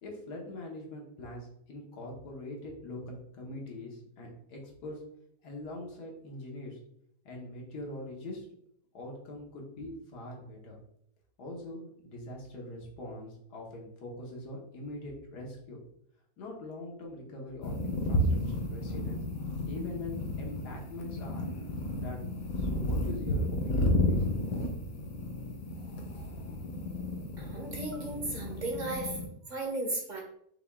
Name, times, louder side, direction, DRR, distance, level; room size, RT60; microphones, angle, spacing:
voice 1, 0.0-5.0 5.4-6.8 7.2-8.4 8.9-10.8 11.4-15.8 16.4-19.2 19.7-21.5 21.9-22.3 22.6-24.3, left 1 dB, 85° left, -1 dB, 1.7 m, -43 dB
sound 1, 17.6-29.3, left 1 dB, 65° left, 1.2 m, -32 dB
voice 2, 27.4-29.2 29.5-30.2, right 2 dB, 45° right, 0 dB, 0.6 m, -35 dB
5.9 x 2.3 x 3.4 m, 0.71 s
omnidirectional pair, 1.7 m